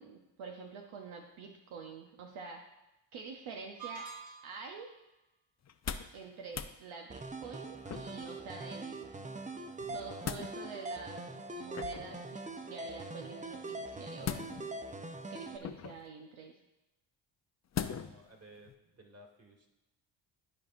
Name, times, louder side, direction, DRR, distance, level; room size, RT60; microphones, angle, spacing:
voice 1, 0.0-2.6 3.1-4.1 4.4-4.9 6.1-9.1 9.9-11.2 11.5-14.6 15.3-16.5, right 5 dB, 75° right, 2 dB, 0.9 m, -47 dB
sound 1, 3.8-4.8, right 6 dB, 45° right, 2.4 m, -46 dB
sound 2, 5.6-6.2 6.5-6.8 7.9-8.3 9.8-10.5 11.7-12.2 14.2-14.8 15.6-16.1 17.7-18.2 18.7-18.8, left 8 dB, 35° left, 0.6 m, -39 dB
sound 3, 7.1-15.6, right 2 dB, 15° right, 0.6 m, -42 dB
voice 2, 17.9-19.7, right 1 dB, 30° right, 2 dB, 1.9 m, -56 dB
12.5 x 4.4 x 2.5 m, 0.95 s
supercardioid pair, 55°, 49 cm